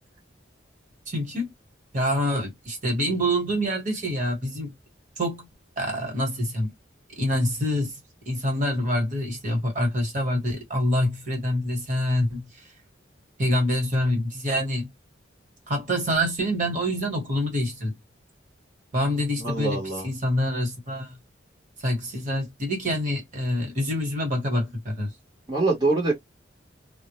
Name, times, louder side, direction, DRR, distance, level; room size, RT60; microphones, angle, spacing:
voice 1, 1.1-1.5 1.9-4.7 5.2-5.5 5.8-6.7 7.2-7.9 8.3-12.5 13.4-14.9 15.7-18.0 18.9-21.2 21.8-25.1, equal, 45° right, 1.1 m, -26 dB
voice 2, 19.4-20.1 25.5-26.1, right 3 dB, 25° right, 0.8 m, -24 dB
2.1 x 2.0 x 2.9 m
head